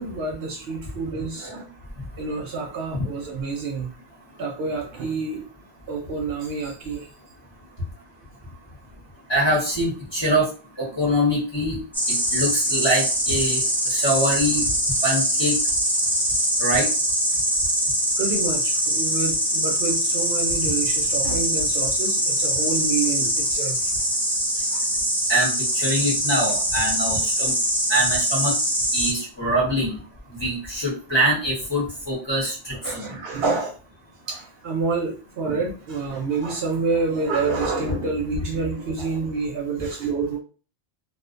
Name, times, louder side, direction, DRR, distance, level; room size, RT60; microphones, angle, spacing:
voice 1, 0.0-1.7 2.2-3.9 4.4-5.4 5.9-7.1 10.9-11.0 18.2-23.9 24.7-24.8 32.8-33.8 34.3-40.4, right 4 dB, 65° right, 1 dB, 0.7 m, -28 dB
voice 2, 9.3-10.5 10.8-11.8 12.1-14.6 15.0-15.6 16.6-16.9 25.3-27.5 27.9-28.5 28.9-30.0 30.4-33.1, equal, 25° left, -5 dB, 0.8 m, -24 dB
Insect, 11.9-29.1, equal, 5° left, 0.3 m, -23 dB
2.3 x 2.1 x 2.4 m, 0.37 s
omnidirectional pair, 1.2 m